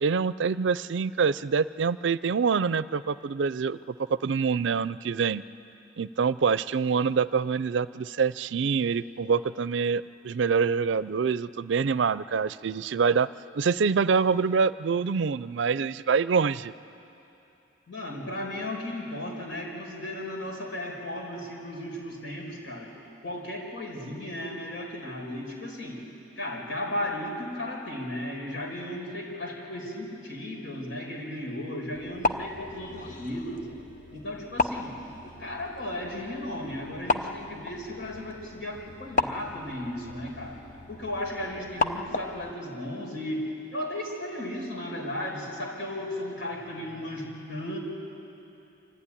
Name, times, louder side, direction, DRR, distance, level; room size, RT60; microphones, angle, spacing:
voice 1, 0.0-3.8 4.1-5.4 6.0-13.3 13.5-16.7, right 5 dB, 70° right, 17 dB, 0.4 m, -25 dB
voice 2, 17.9-22.9 23.2-26.0 26.4-33.6 34.1-34.9 35.4-40.6 40.9-43.4 43.7-47.8, left 1 dB, 75° left, -1 dB, 5.0 m, -35 dB
sound 1, 32.0-42.5, left 2 dB, 40° left, 0.8 m, -34 dB
25.0 x 15.0 x 9.9 m, 2.9 s
head